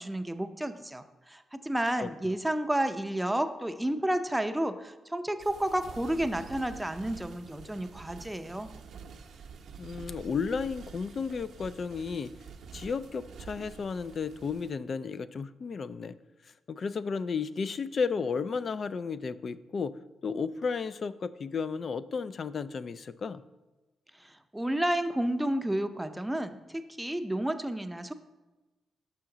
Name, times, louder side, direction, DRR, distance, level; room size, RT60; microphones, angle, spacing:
voice 1, 0.0-8.7 24.2-28.1, right 1 dB, 10° right, 9 dB, 0.5 m, -31 dB
sound 1, 5.4-14.7, right 6 dB, 75° right, 0.6 m, -48 dB
voice 2, 9.8-12.3 12.7-16.2 16.7-19.9 20.2-23.4, left 5 dB, 55° left, 15 dB, 0.3 m, -33 dB
6.1 x 5.7 x 3.8 m, 1.1 s
supercardioid pair, 60°, 0 cm